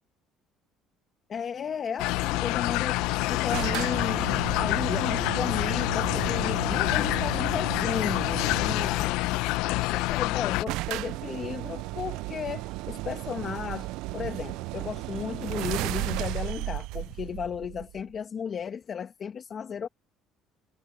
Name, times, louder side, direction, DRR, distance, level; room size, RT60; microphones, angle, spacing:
voice 1, 1.3-9.2 9.6-19.9, left 7 dB, 35° left, 2.1 m, -34 dB
sound 1, 2.0-10.6, left 19 dB, 85° left, 0.7 m, -27 dB
sound 2, 3.5-9.0 10.0-10.1 10.3-10.4 10.7-18.1, right 20 dB, 80° right, 0.4 m, -34 dB
cardioid pair, 130°, 0 cm